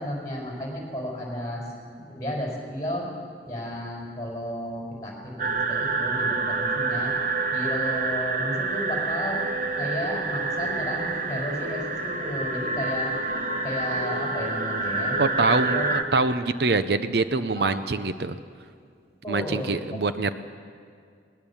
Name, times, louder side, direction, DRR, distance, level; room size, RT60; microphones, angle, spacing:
voice 1, 0.0-1.6 1.9-3.1 3.4-7.1 7.5-9.4 9.8-13.1 13.6-15.2 15.7-15.9 17.5-17.8 19.2-19.7, left 1 dB, 20° left, -2 dB, 5.2 m, -33 dB
sound 1, 5.4-16.0, right 3 dB, 45° right, 1.3 m, -27 dB
voice 2, 15.2-18.4 19.3-20.3, right 3 dB, 65° right, 11 dB, 0.7 m, -24 dB
20.5 x 20.0 x 7.1 m, 2.2 s
head